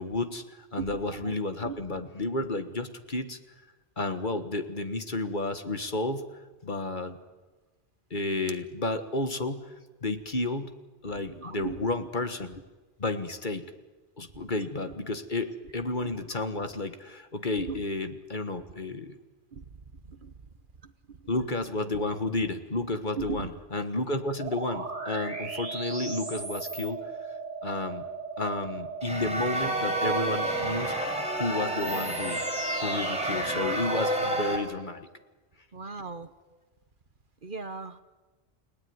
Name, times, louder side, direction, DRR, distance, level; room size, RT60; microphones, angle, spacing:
voice 1, 0.0-3.4 4.0-6.3 6.6-7.2 8.1-9.7 10.0-10.7 11.0-12.6 13.0-13.6 14.2-19.1 21.3-27.1 27.6-28.0 28.4-31.0 31.4-32.5 32.8-35.1, left 2 dB, 45° left, 8 dB, 1.7 m, -31 dB
voice 2, 0.8-1.3 1.6-1.8 11.3-11.9 14.4-14.5 17.7-17.8 19.5-19.6 20.1-20.3 21.1-21.2 23.2-23.5 35.7-36.3 37.4-38.0, right 5 dB, 50° right, 11 dB, 1.2 m, -38 dB
sound 1, 24.4-34.3, right 4 dB, 80° right, 3.7 m, -37 dB
sound 2, 29.0-34.6, right 1 dB, 5° right, 5.4 m, -30 dB
30.0 x 18.0 x 9.6 m, 1.2 s
omnidirectional pair, 1.2 m